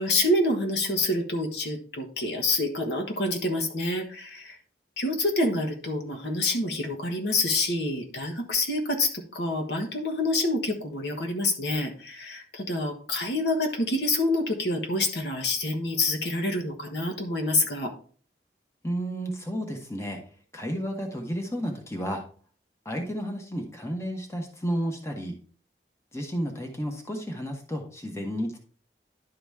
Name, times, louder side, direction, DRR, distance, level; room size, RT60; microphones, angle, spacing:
voice 1, 0.0-4.6 5.0-17.9, left 2 dB, 75° left, 3 dB, 1.4 m, -27 dB
voice 2, 18.8-20.2 20.5-22.2 22.8-25.4 26.1-28.6, equal, 15° left, 2 dB, 1.1 m, -32 dB
11.0 x 4.0 x 3.5 m, 0.42 s
head